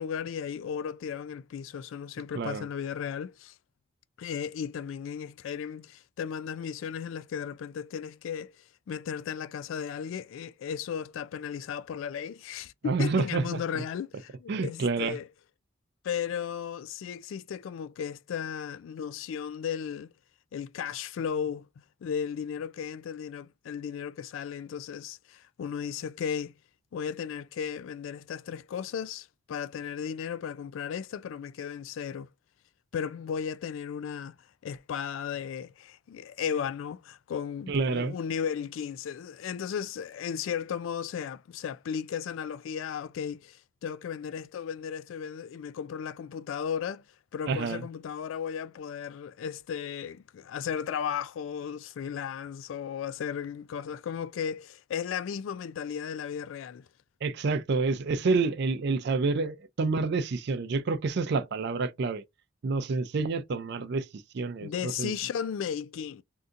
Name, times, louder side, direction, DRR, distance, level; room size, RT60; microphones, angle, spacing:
voice 1, 0.0-3.5 4.2-8.6 8.9-15.3 16.0-20.1 20.5-21.7 22.0-26.5 26.9-32.3 32.9-34.4 34.6-47.0 47.3-56.9 64.6-66.2, left 7 dB, 75° left, 0.3 m, -35 dB
voice 2, 12.8-13.6 14.5-15.2 37.7-38.2 47.5-47.8 57.2-62.2 62.6-64.1 64.3-65.1, right 4 dB, 55° right, 0.4 m, -28 dB
3.6 x 2.7 x 2.5 m
head